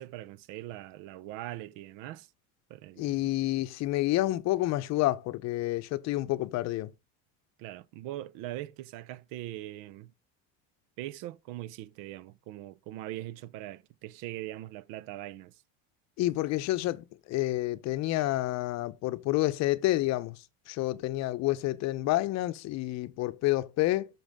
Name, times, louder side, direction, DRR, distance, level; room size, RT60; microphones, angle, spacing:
voice 1, 0.0-2.3 2.7-3.3 7.6-10.1 11.0-15.6, right 14 dB, 60° right, 0.6 m, -41 dB
voice 2, 3.0-6.9 16.2-24.1, left 16 dB, 50° left, 0.7 m, -29 dB
12.0 x 6.0 x 3.6 m
cardioid pair, 135°, 36 cm